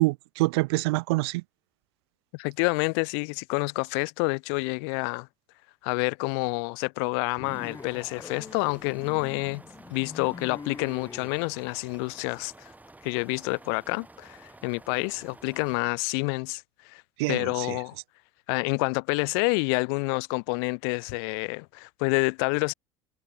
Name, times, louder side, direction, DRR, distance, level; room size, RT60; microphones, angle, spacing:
voice 1, 0.0-1.4 17.2-17.8, right 23 dB, 80° right, 0.5 m, -26 dB
voice 2, 2.3-5.3 5.8-9.6 9.9-12.7 13.0-17.0 17.3-18.0 18.5-22.7, left 36 dB, 75° left, 0.5 m, -28 dB
sound 1, 7.4-11.3, left 4 dB, 25° left, 1.9 m, -44 dB
sound 2, 7.4-15.8, right 2 dB, 10° right, 3.6 m, -51 dB
hypercardioid pair, 75°, 13 cm